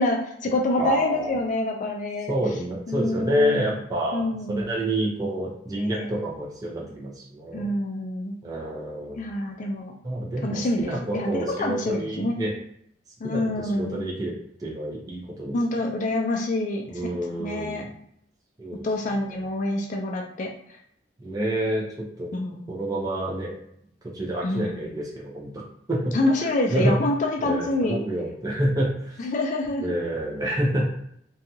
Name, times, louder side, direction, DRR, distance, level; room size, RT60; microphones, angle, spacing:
voice 1, 0.0-2.3 2.9-3.7 4.1-4.7 5.8-6.1 7.5-8.4 9.1-9.9 10.4-12.4 13.2-14.1 15.5-16.8 17.4-17.8 18.8-20.5 22.3-22.7 24.4-24.8 26.1-28.0 29.2-30.0, left 2 dB, 45° left, 1 dB, 0.4 m, -26 dB
voice 2, 0.8-1.3 2.3-7.7 8.4-9.4 10.0-12.5 13.2-14.3 14.6-15.5 16.9-17.9 18.6-18.9 19.3-19.4 21.2-22.3 22.7-23.6 24.1-25.5 25.9-27.0 27.4-29.2 29.8-30.8, right 1 dB, 20° right, -4 dB, 0.6 m, -28 dB
2.7 x 2.3 x 2.7 m, 0.69 s
head